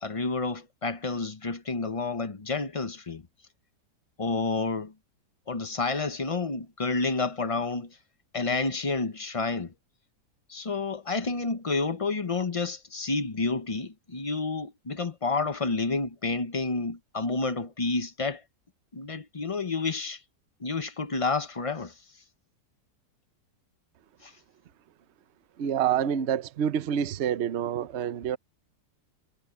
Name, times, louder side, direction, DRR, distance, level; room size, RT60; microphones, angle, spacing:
voice 1, 0.0-3.2 4.2-4.9 5.5-8.0 8.3-9.7 10.5-18.4 18.9-20.2 20.6-21.9 24.2-24.3, left 3 dB, 35° left, 0.6 m, -30 dB
voice 2, 25.6-28.4, right 9 dB, 55° right, 0.9 m, -27 dB
omnidirectional pair, 1.8 m